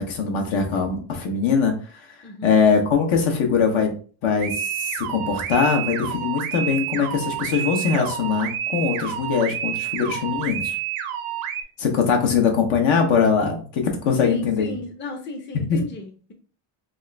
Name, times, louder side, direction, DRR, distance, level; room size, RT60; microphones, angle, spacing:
voice 1, 0.0-3.9 4.2-10.8 11.8-14.7 15.7-15.8, left 6 dB, 70° left, 3 dB, 1.1 m, -22 dB
sound 1, 4.4-11.6, right 10 dB, 80° right, 0.7 m, -29 dB
voice 2, 14.2-16.3, left 2 dB, 25° left, 3 dB, 0.5 m, -34 dB
3.5 x 2.5 x 3.2 m, 0.40 s
cardioid pair, 125°, 48 cm